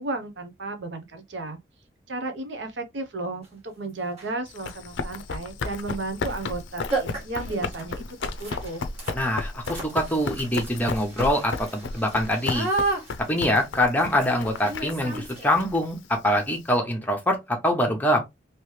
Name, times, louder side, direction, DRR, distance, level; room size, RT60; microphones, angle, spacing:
voice 1, 0.0-1.6 2.1-8.8, right 2 dB, 75° right, 0.8 m, -33 dB
sound 1, 3.4-3.5 4.1-4.4 6.1-6.3 6.6-6.7 6.9-15.8, right 3 dB, 35° right, 1.4 m, -33 dB
Run, 4.5-16.7, left 4 dB, 75° left, 0.4 m, -34 dB
voice 2, 9.1-12.7 13.3-18.2, left 1 dB, 10° left, 0.8 m, -24 dB
3.1 x 2.9 x 3.1 m
head